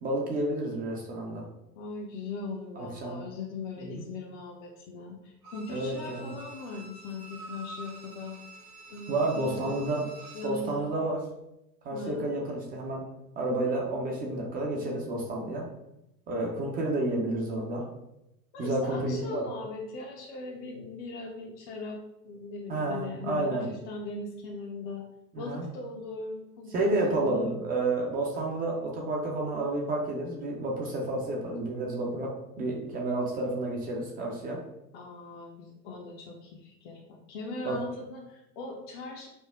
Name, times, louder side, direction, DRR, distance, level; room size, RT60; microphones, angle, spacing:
voice 1, 0.0-1.4 2.8-3.2 3.8-4.0 5.7-6.3 9.1-10.0 10.4-11.2 11.8-13.0 13.4-15.6 16.3-17.9 18.6-19.4 22.7-23.7 25.3-25.6 26.7-34.6 37.6-37.8, right 2 dB, 20° right, -1 dB, 0.4 m, -30 dB
voice 2, 1.8-8.4 8.9-9.9 10.3-10.9 11.9-12.3 18.5-22.0 22.2-25.0 25.4-27.6 34.9-39.3, left 3 dB, 45° left, -2 dB, 0.6 m, -39 dB
Bowed string instrument, 5.4-10.6 11.0-11.1, right 2 dB, 75° right, 0.9 m, -47 dB
5.2 x 2.0 x 2.3 m, 0.86 s
figure-of-eight pair, 90°, 49 cm